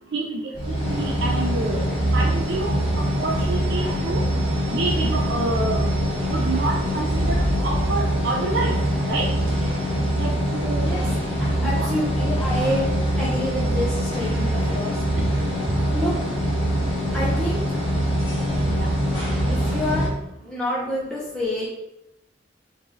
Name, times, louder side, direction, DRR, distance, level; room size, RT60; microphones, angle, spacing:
voice 1, 0.1-1.8 2.1-4.3 4.7-5.9 6.3-8.8 9.1-9.3 10.2-11.0 11.6-11.9 18.6-18.9, right 3 dB, 65° right, -1 dB, 0.4 m, -28 dB
sound 1, 0.5-20.1, equal, 35° left, 1.3 m, -23 dB
voice 2, 11.4-15.5 15.9-16.3 17.1-17.6 19.5-20.1 20.4-21.7, left 1 dB, 5° left, -7 dB, 0.7 m, -28 dB
3.1 x 2.9 x 3.6 m, 0.85 s
head